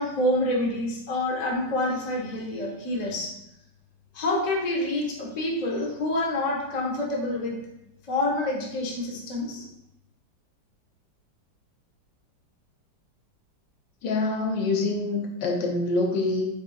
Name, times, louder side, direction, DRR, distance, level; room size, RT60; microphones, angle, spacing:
voice 1, 0.0-3.4 4.1-7.6 8.1-9.7, left 1 dB, 45° left, -3 dB, 0.5 m, -27 dB
voice 2, 14.0-16.5, left 3 dB, 75° left, 1 dB, 1.3 m, -25 dB
7.5 x 2.7 x 2.3 m, 0.89 s
omnidirectional pair, 2.1 m